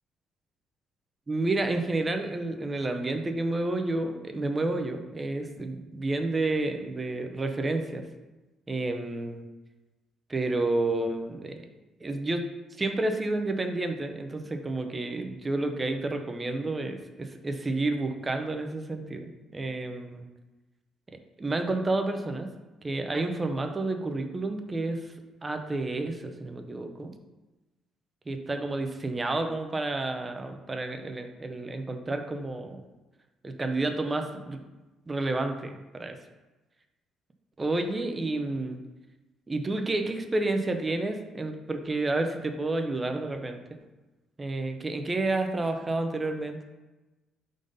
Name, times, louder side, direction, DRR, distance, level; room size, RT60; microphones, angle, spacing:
voice 1, 1.3-8.0 8.7-9.5 10.3-11.7 12.0-12.4 12.7-20.3 21.4-22.5 22.8-27.1 28.3-32.8 33.4-34.6 35.1-36.2 37.6-38.8 39.5-43.6 44.4-46.7, right 2 dB, 20° right, 5 dB, 0.6 m, -30 dB
5.0 x 3.9 x 5.4 m, 1.1 s
cardioid pair, 140°, 0 cm